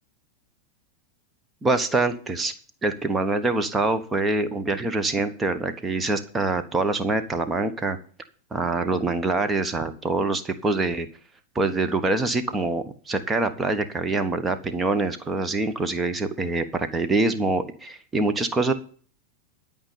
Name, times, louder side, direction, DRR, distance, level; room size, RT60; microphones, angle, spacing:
voice 1, 1.6-2.5 2.8-8.0 8.5-11.1 11.5-18.7, right 3 dB, 15° right, 9 dB, 1.2 m, -25 dB
11.5 x 5.3 x 8.7 m, 0.43 s
figure-of-eight pair, 90°, 0 cm